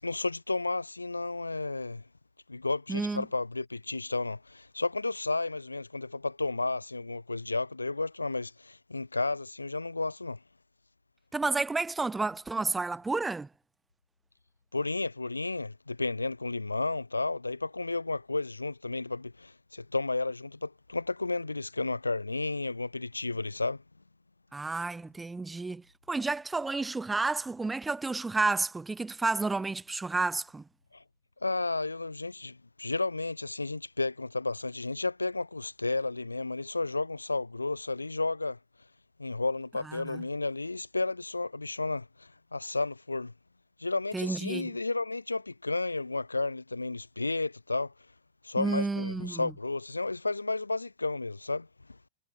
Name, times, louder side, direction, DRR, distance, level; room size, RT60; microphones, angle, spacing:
voice 1, 0.0-2.0 2.5-10.4 14.7-23.8 30.9-31.0 31.4-38.6 39.2-43.3 43.8-47.9 48.4-52.0, left 3 dB, 80° left, 2.3 m, -32 dB
voice 2, 2.9-3.3 11.3-13.5 24.5-30.6 39.9-40.2 44.1-44.7 48.6-49.5, right 3 dB, 10° right, 2.9 m, -31 dB
figure-of-eight pair, 90°, 0 cm